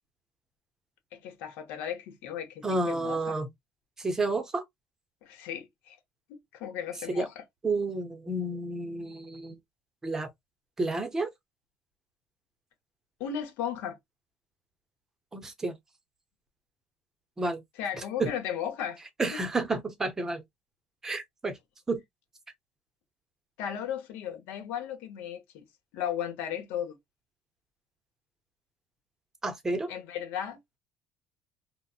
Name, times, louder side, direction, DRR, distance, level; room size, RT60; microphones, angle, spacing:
voice 1, 1.1-3.4 5.2-6.0 6.3-7.4 13.2-14.0 17.8-19.0 19.3-19.4 23.6-25.6 25.9-27.0 29.9-30.6, left 9 dB, 80° left, 1.0 m, -35 dB
voice 2, 2.6-3.5 4.0-4.6 7.1-7.3 7.6-9.6 10.0-10.3 10.8-11.3 15.3-15.8 17.4-17.6 18.2-18.3 19.2-20.4 21.0-21.5 21.9-22.0 29.4-29.9, right 2 dB, 15° right, 0.6 m, -30 dB
3.9 x 2.1 x 2.4 m
cardioid pair, 170°, 3 cm